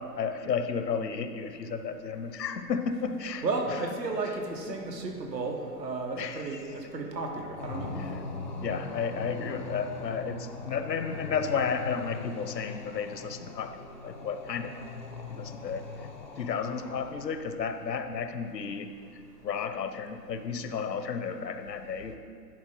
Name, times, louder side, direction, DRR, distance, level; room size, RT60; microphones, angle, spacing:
voice 1, 0.0-3.4 6.2-6.4 8.0-8.1 8.6-13.8 14.0-14.9 15.3-15.9 16.4-18.9 19.4-22.2, left 6 dB, 80° left, 9 dB, 0.7 m, -32 dB
voice 2, 3.4-7.9, right 3 dB, 80° right, 2 dB, 1.3 m, -33 dB
sound 1, 7.6-17.5, left 3 dB, 30° left, 0.4 m, -41 dB
10.5 x 4.4 x 3.8 m, 2.2 s
figure-of-eight pair, 125°, 49 cm